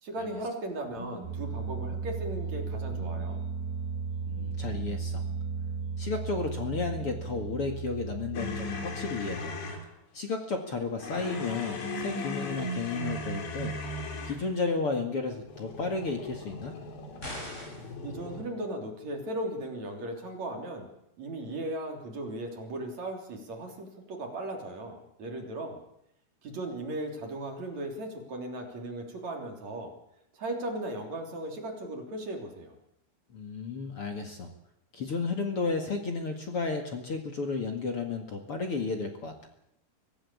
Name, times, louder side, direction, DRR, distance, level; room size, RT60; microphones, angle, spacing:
voice 1, 0.0-3.4 18.0-20.9 21.2-25.8 26.4-29.9 30.3-32.7, right 1 dB, 40° right, 2 dB, 4.1 m, -37 dB
sound 1, 0.7-9.5, right 5 dB, 65° right, 6.3 m, -35 dB
voice 2, 4.3-5.2 6.0-9.6 10.1-13.7 14.2-16.7 33.3-34.5 34.9-39.5, left 4 dB, 50° left, 4 dB, 1.7 m, -33 dB
sound 2, 8.3-9.9 11.0-14.5 15.4-18.4, left 1 dB, 65° left, 5.1 m, -37 dB
sound 3, 17.2-17.9, equal, 15° left, 5.6 m, -40 dB
24.5 x 16.5 x 8.6 m, 0.77 s
omnidirectional pair, 5.5 m